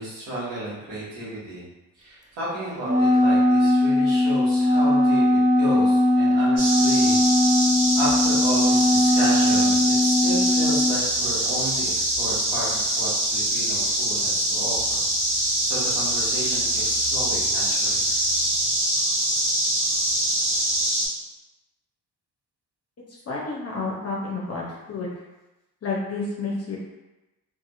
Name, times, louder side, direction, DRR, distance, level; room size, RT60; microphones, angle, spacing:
voice 1, 0.0-1.6 1.9-7.2 7.9-18.0, right 1 dB, 90° right, -9 dB, 1.2 m, -33 dB
Wind instrument woodwind instrument, 2.8-11.0, left 1 dB, 20° right, 0.4 m, -19 dB
sound 1, 6.6-21.1, right 1 dB, 50° right, 1.5 m, -24 dB
voice 2, 23.3-25.1 25.8-26.8, left 3 dB, 35° left, -4 dB, 0.6 m, -30 dB
2.7 x 2.5 x 2.5 m, 1.0 s
supercardioid pair, 50°, 41 cm